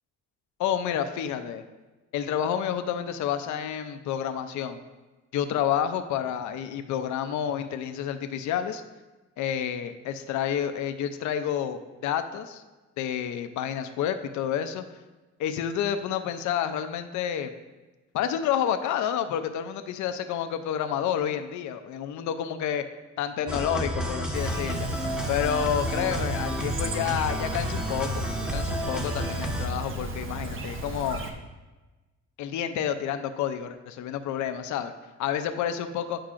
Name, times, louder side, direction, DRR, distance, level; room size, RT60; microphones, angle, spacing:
voice 1, 0.6-1.6 2.1-4.8 5.3-8.8 9.4-12.6 13.0-14.8 15.4-17.5 18.1-22.8 23.2-24.9 25.3-28.2 28.5-31.2 32.4-34.9 35.2-36.2, left 9 dB, 75° left, 9 dB, 0.5 m, -29 dB
sound 1, 23.5-29.7, equal, ahead, 0.7 m, -31 dB
Chirp tweet, 24.3-31.3, right 2 dB, 45° right, 0.7 m, -35 dB
8.9 x 4.6 x 2.5 m, 1.2 s
cardioid pair, 90°, 30 cm